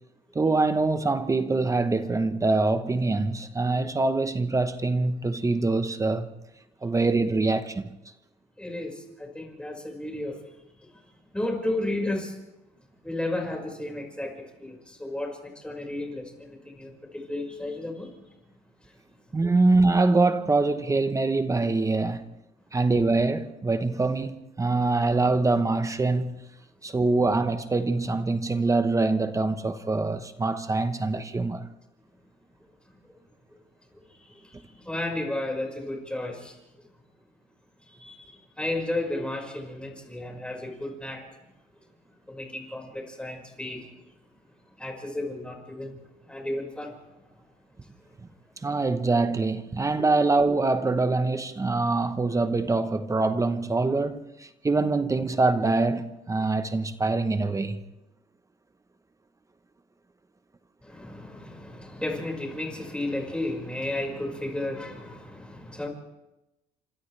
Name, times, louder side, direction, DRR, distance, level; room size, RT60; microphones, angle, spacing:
voice 1, 0.3-6.3 6.8-7.9 19.3-22.2 22.7-26.4 26.8-31.6 48.6-57.8, right 3 dB, 20° right, 1.0 m, -24 dB
voice 2, 8.6-10.5 10.9-11.0 11.3-12.4 13.0-18.1 18.8-18.9 33.5-33.6 34.0-36.6 37.9-41.2 42.3-43.9 44.8-46.0 46.2-46.9 47.4-47.5 50.1-50.2 60.8-65.9, left 1 dB, 5° left, 5.4 m, -33 dB
29.0 x 26.5 x 3.4 m
cardioid pair, 110°, 17 cm